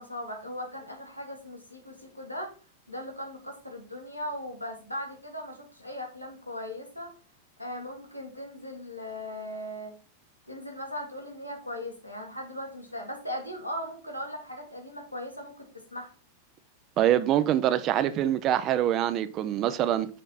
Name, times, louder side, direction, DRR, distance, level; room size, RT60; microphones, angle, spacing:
voice 1, 0.0-2.5 2.9-7.1 7.6-9.9 10.5-16.1, left 1 dB, 90° left, 1.7 m, -38 dB
voice 2, 17.0-20.1, right 11 dB, 35° right, 0.5 m, -24 dB
6.2 x 4.4 x 4.0 m
figure-of-eight pair, 90°, 0 cm